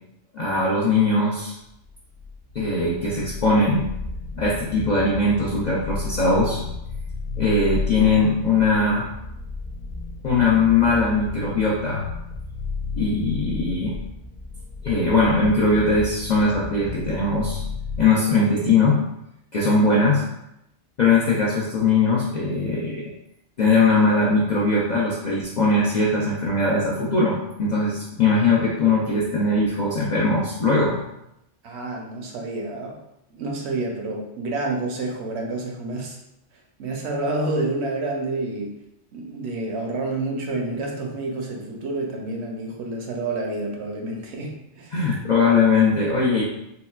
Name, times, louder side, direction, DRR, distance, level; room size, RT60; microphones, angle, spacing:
voice 1, 0.3-1.5 2.5-3.9 4.3-6.6 7.4-9.1 10.2-12.1 12.9-14.0 14.8-17.6 18.0-19.0 19.5-20.2 21.0-23.0 23.6-31.0 44.9-46.4, left 3 dB, 60° left, -5 dB, 0.4 m, -20 dB
sound 1, 1.8-18.1, left 4 dB, 90° left, 1.0 m, -33 dB
voice 2, 31.6-33.0 33.3-36.2 36.8-38.7 39.1-45.0, right 2 dB, 70° right, 0 dB, 0.8 m, -29 dB
3.8 x 2.2 x 2.2 m, 0.83 s
omnidirectional pair, 1.2 m